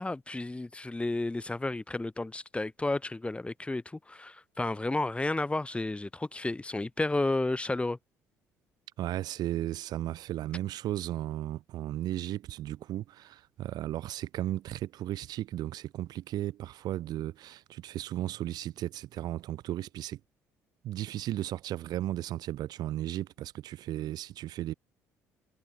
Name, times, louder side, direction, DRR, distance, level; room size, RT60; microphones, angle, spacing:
voice 1, 0.0-8.0, left 2 dB, 15° left, 1.3 m, -32 dB
voice 2, 9.0-20.2 20.8-24.7, right 13 dB, 60° right, 0.6 m, -35 dB
hypercardioid pair, 55°, 8 cm